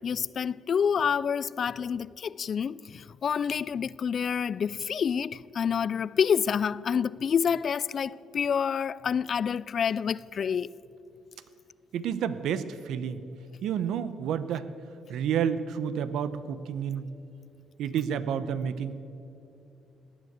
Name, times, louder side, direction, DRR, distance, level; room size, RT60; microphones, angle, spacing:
voice 1, 0.0-10.7, left 7 dB, 55° left, 0.3 m, -28 dB
voice 2, 11.9-13.2 13.6-14.7 15.1-17.1 17.8-19.0, right 8 dB, 80° right, 0.8 m, -30 dB
17.5 x 9.4 x 8.1 m
cardioid pair, 90°, 0 cm